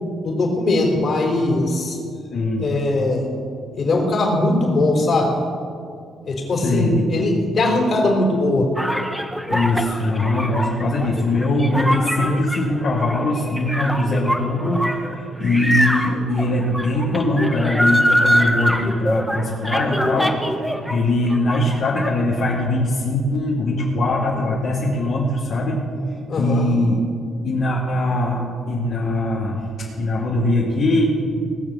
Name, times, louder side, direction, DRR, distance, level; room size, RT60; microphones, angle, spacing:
voice 1, 0.2-2.0 2.6-3.2 3.7-5.3 6.2-8.7 26.3-26.7, left 2 dB, 50° left, 0 dB, 4.1 m, -20 dB
voice 2, 2.3-2.7 6.6-7.0 9.5-25.8 26.4-27.0 27.4-29.6 30.0-31.1, left 1 dB, 65° left, -6 dB, 2.4 m, -21 dB
sound 1, 8.8-21.0 21.2-22.1, equal, ahead, 1.1 m, -23 dB
19.5 x 7.1 x 7.3 m, 2.2 s
cardioid pair, 90°, 0 cm